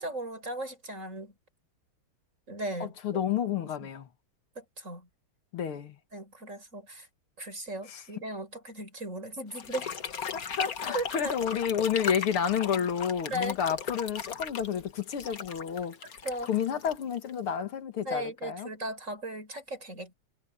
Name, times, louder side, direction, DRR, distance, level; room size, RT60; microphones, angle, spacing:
voice 1, 0.0-1.3 2.5-2.9 3.5-3.9 4.6-5.1 6.1-7.1 7.4-9.9 10.9-11.4 13.3-13.6 16.2-16.5 18.0-20.1, right 1 dB, 35° right, 6.3 m, -37 dB
voice 2, 2.8-4.1 5.5-6.0 7.9-8.0 10.3-16.0 16.5-18.7, left 8 dB, 85° left, 2.5 m, -30 dB
sound 1, 9.5-17.5, left 7 dB, 45° left, 1.6 m, -37 dB
omnidirectional pair, 2.3 m